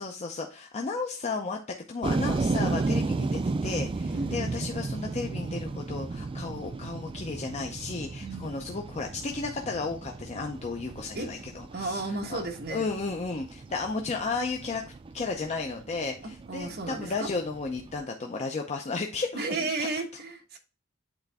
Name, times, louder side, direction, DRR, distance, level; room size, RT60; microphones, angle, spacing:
voice 1, 0.0-12.4 12.7-14.8 15.1-19.4 19.8-19.9, left 4 dB, 30° left, 3 dB, 0.5 m, -33 dB
sound 1, 2.0-18.0, right 3 dB, 25° right, 0.3 m, -34 dB
voice 2, 4.1-4.5 8.2-8.5 11.1-11.3 11.7-12.8 16.5-17.3 19.3-20.6, right 3 dB, 50° right, 2 dB, 1.3 m, -33 dB
8.2 x 3.8 x 3.4 m, 0.34 s
head